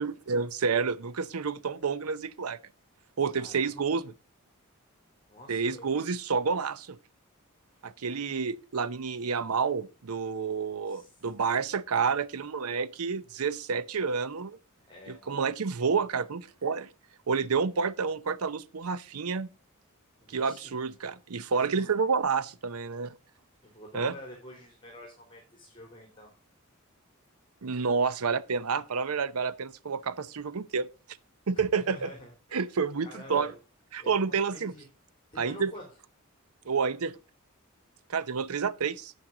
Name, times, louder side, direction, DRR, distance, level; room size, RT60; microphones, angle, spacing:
voice 1, 0.0-2.6 3.2-4.1 5.5-7.0 7.8-14.6 15.1-16.9 17.3-19.5 20.3-23.1 23.9-24.1 27.6-30.9 31.5-32.1 32.5-33.5 33.9-34.7 35.4-35.7 36.7-37.2 38.1-39.1, right 5 dB, 90° right, 0.7 m, -29 dB
voice 2, 3.3-3.8 5.3-5.9 10.8-11.5 14.9-15.4 20.2-20.7 21.5-21.9 23.6-26.3 31.5-32.6 33.0-33.5 34.0-34.8 35.3-35.8, left 1 dB, 25° left, 3.3 m, -47 dB
9.6 x 9.0 x 3.8 m
head